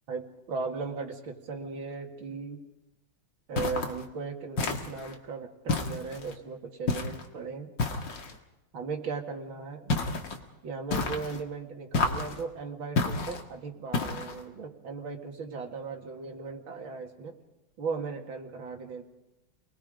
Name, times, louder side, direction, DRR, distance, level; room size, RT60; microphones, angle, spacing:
voice 1, 0.1-2.6 3.5-7.7 8.7-9.9 10.6-17.3 17.8-19.0, right 4 dB, 75° right, 3 dB, 2.9 m, -37 dB
sound 1, 3.6-4.0 4.6-5.1 5.7-6.3 6.9-7.3 7.8-8.4 9.9-10.4 10.9-11.4 11.9-12.4 13.0-13.4 13.9-14.4, left 3 dB, 65° left, 2.5 m, -30 dB
28.5 x 20.5 x 5.1 m, 0.98 s
omnidirectional pair, 2.2 m